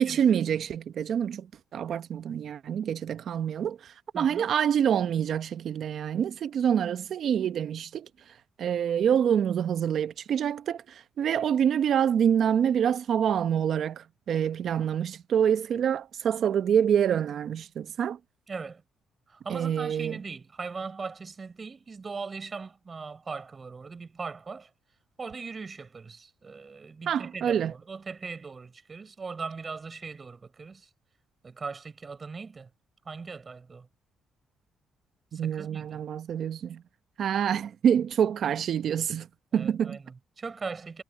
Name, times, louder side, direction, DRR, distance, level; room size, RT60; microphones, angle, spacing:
voice 1, 0.0-18.2 19.5-20.2 27.1-27.7 35.3-36.8 37.2-39.3 39.5-40.0, right 8 dB, 60° right, 1.0 m, -26 dB
voice 2, 4.1-4.5 18.5-18.8 19.3-24.7 25.2-30.9 31.4-32.7 33.0-33.9 35.3-36.0 39.5-41.0, right 4 dB, 30° right, 4.8 m, -39 dB
cardioid pair, 100°, 0 cm